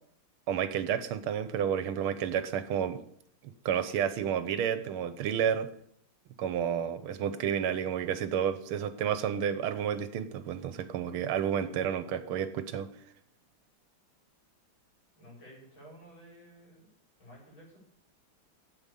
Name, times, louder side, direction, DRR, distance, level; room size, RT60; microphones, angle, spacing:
voice 1, 0.5-3.0 3.7-5.7 6.4-12.9, right 8 dB, 80° right, 12 dB, 1.8 m, -30 dB
voice 2, 15.2-16.9 17.2-17.8, equal, 65° left, -3 dB, 5.9 m, -53 dB
9.0 x 8.0 x 8.3 m, 0.65 s
omnidirectional pair, 2.4 m